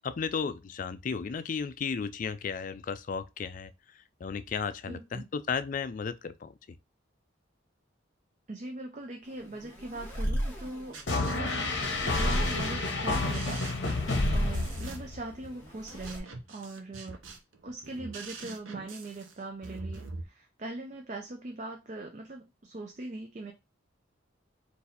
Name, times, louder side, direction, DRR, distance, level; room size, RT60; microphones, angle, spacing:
voice 1, 0.0-6.8, left 6 dB, 40° left, 0.3 m, -34 dB
voice 2, 4.9-5.2 8.5-11.0 11.3-11.6 12.0-13.7 13.9-17.2 17.6-23.5, right 2 dB, 40° right, 0.5 m, -41 dB
sound 1, 9.2-16.2, equal, 10° left, 1.3 m, -35 dB
sound 2, 10.6-20.2, right 3 dB, 85° right, 0.8 m, -44 dB
sound 3, 11.1-15.4, left 3 dB, 60° left, 1.0 m, -30 dB
4.0 x 2.6 x 4.1 m
head